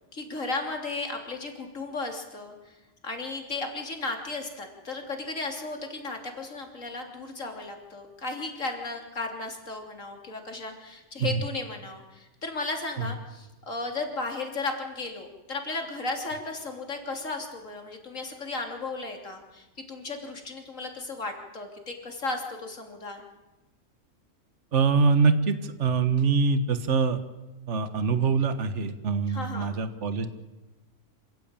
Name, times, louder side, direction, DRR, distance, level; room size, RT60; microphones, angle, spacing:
voice 1, 0.1-2.8 3.0-23.2 29.3-29.7, left 3 dB, 85° left, 3 dB, 3.6 m, -35 dB
voice 2, 24.7-27.2 27.7-30.3, right 5 dB, 65° right, 10 dB, 1.6 m, -24 dB
27.0 x 16.0 x 8.9 m, 1.1 s
omnidirectional pair, 1.3 m